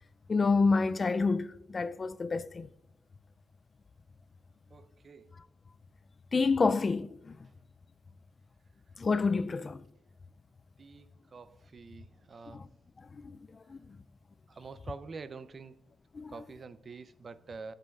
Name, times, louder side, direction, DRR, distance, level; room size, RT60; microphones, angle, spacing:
voice 1, 0.3-2.7 6.3-7.3 9.0-9.8 12.5-12.7 13.2-13.4 13.7-13.8 16.1-16.3, left 4 dB, 35° left, 0.3 m, -28 dB
voice 2, 4.7-5.4 9.6-9.7 10.8-12.7 14.5-15.8 16.3-17.7, right 4 dB, 40° right, 0.5 m, -47 dB
14.0 x 7.7 x 2.3 m
cardioid pair, 85°, 0 cm